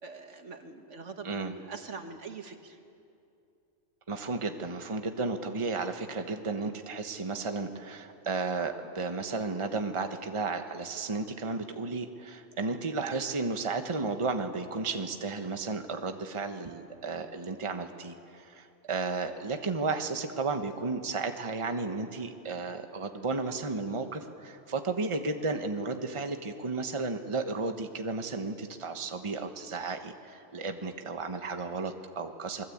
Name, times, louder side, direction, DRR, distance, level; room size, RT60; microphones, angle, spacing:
voice 1, 0.0-2.8, right 4 dB, 70° right, 6 dB, 1.9 m, -43 dB
voice 2, 4.1-32.6, right 3 dB, 25° right, 6 dB, 1.2 m, -33 dB
27.0 x 20.5 x 8.6 m, 2.6 s
omnidirectional pair, 1.3 m